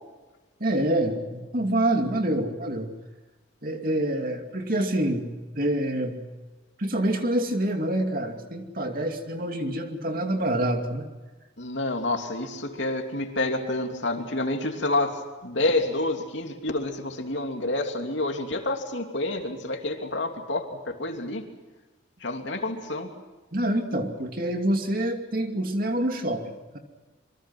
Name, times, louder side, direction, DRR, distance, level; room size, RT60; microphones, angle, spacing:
voice 1, 0.6-2.9 3.6-6.2 6.8-11.1 23.5-26.8, right 1 dB, 45° right, 4 dB, 2.6 m, -26 dB
voice 2, 11.6-21.5 22.2-23.1, left 2 dB, 65° left, 4 dB, 3.0 m, -28 dB
26.5 x 24.0 x 6.1 m, 1.2 s
head